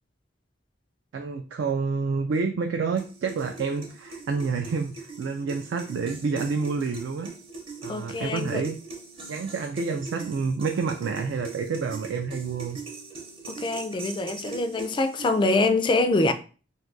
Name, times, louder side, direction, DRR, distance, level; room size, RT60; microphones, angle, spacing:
voice 1, 1.1-7.3 7.8-8.8 9.3-12.8, right 4 dB, 70° right, 0.3 m, -28 dB
sound 1, 3.0-15.6, right 4 dB, 30° right, 0.7 m, -41 dB
voice 2, 7.9-8.6 13.5-16.3, left 2 dB, 25° left, 0.3 m, -24 dB
2.6 x 2.3 x 3.8 m
head